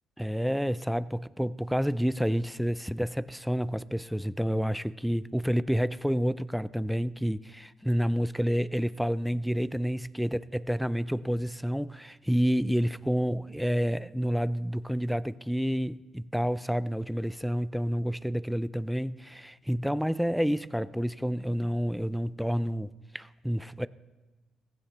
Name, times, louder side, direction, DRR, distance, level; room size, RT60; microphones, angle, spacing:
voice 1, 0.2-23.9, equal, ahead, 0.3 m, -29 dB
16.0 x 15.5 x 3.3 m
cardioid pair, 90°, 0 cm